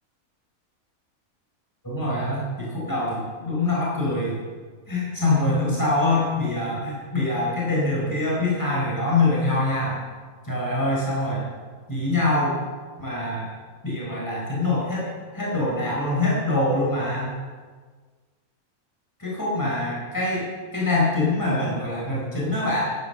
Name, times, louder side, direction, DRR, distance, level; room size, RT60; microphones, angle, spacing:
voice 1, 1.8-4.4 4.9-10.0 10.4-11.4 11.9-12.5 13.0-13.5 13.8-17.3 19.2-20.5 20.7-22.8, left 2 dB, 15° left, -5 dB, 4.5 m, -24 dB
15.0 x 10.5 x 6.9 m, 1.5 s
omnidirectional pair, 1.5 m